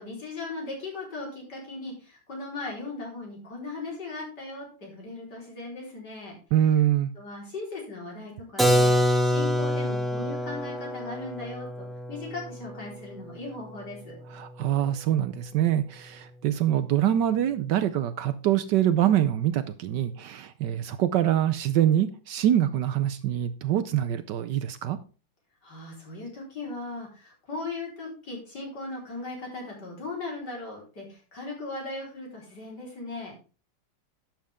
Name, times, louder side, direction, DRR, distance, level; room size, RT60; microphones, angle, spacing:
voice 1, 0.0-6.3 7.1-14.2 25.6-33.4, left 3 dB, 55° left, 4.7 m, -38 dB
voice 2, 6.5-7.1 14.3-25.0, right 11 dB, 70° right, 1.2 m, -24 dB
Keyboard (musical), 8.6-14.2, equal, ahead, 1.2 m, -26 dB
11.5 x 7.7 x 3.5 m
omnidirectional pair, 2.1 m